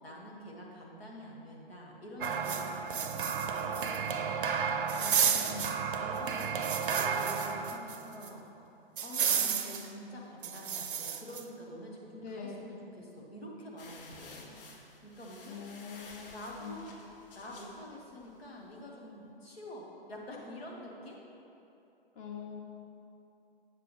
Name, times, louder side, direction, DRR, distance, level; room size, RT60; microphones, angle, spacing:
voice 1, 0.0-5.5 6.0-8.4 9.0-14.6 15.0-15.6 16.3-16.9 17.3-21.2, equal, 80° left, -2 dB, 1.6 m, -47 dB
sound 1, 2.2-8.0 8.2-8.3 9.0-9.9 10.4-11.4, right 7 dB, 60° right, 0.6 m, -31 dB
voice 2, 5.0-5.8 12.1-12.7 15.5-16.9 22.1-22.6, left 6 dB, 25° left, 0 dB, 0.8 m, -44 dB
sound 2, 13.8-18.5, left 3 dB, 65° left, 1.0 m, -53 dB
8.0 x 6.7 x 3.3 m, 2.9 s
figure-of-eight pair, 110°, 30 cm